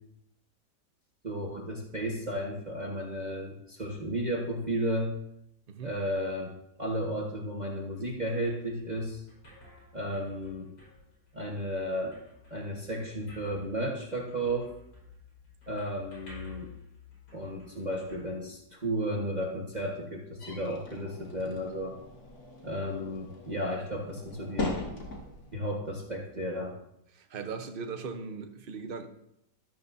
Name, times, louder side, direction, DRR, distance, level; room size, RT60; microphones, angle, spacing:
voice 1, 1.2-5.1 5.8-6.5 6.8-9.2 9.9-10.7 11.3-12.2 12.5-14.7 15.7-16.7 17.3-22.0 22.6-24.7 25.5-26.8, equal, 25° right, 1.4 m, -33 dB
sound 1, 7.6-19.1, left 4 dB, 80° left, 5.1 m, -53 dB
sound 2, 20.4-25.5, left 2 dB, 55° left, 2.4 m, -39 dB
voice 2, 27.1-29.1, right 5 dB, 45° right, 0.8 m, -38 dB
12.5 x 12.0 x 2.7 m
omnidirectional pair, 1.9 m